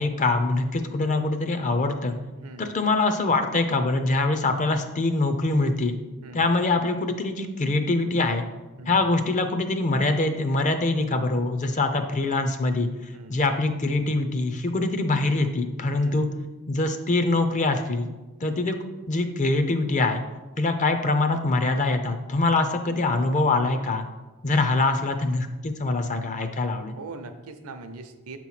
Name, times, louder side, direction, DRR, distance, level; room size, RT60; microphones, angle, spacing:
voice 1, 0.0-2.1 2.6-5.9 6.3-8.4 8.9-16.3 16.7-18.7 19.1-20.2 20.6-24.1 24.4-27.0, left 2 dB, 35° left, 7 dB, 0.5 m, -24 dB
voice 2, 2.4-2.7 6.2-6.5 8.8-9.1 13.1-13.4 16.0-16.3 27.0-28.4, right 3 dB, 75° right, 8 dB, 0.6 m, -41 dB
7.6 x 3.0 x 5.6 m, 1.1 s
head